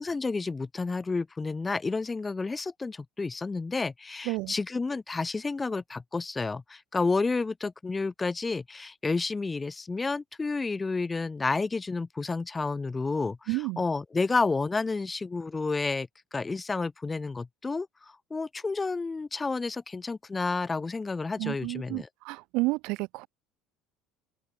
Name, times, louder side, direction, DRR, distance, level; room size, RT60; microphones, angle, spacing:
voice 1, 0.0-17.9 18.3-22.1, left 3 dB, 15° left, 1.0 m, -30 dB
voice 2, 13.5-13.8 21.4-23.3, right 24 dB, 75° right, 0.6 m, -31 dB
cardioid pair, 120°, 0 cm